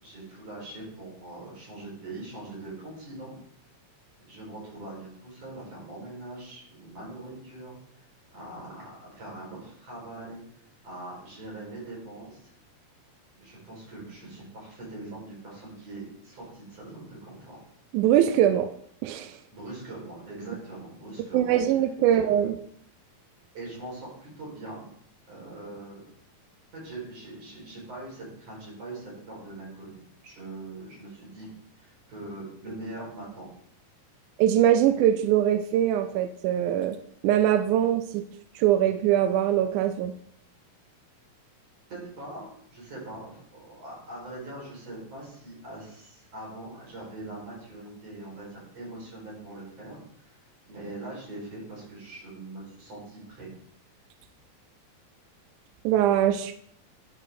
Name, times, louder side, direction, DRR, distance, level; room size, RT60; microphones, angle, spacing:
voice 1, 0.0-3.3 4.3-7.8 8.3-10.4 10.8-12.5 13.4-17.6 19.5-21.6 22.1-22.2 23.5-24.8 25.3-26.1 26.7-31.5 31.8-33.5 41.9-53.5, right 2 dB, 45° right, -4 dB, 5.6 m, -42 dB
voice 2, 17.9-18.7 19.0-19.4 21.3-22.5 34.4-37.0 37.2-38.3 38.6-40.2 55.8-56.5, right 11 dB, 85° right, 9 dB, 1.8 m, -22 dB
10.5 x 6.7 x 3.7 m, 0.66 s
omnidirectional pair, 4.0 m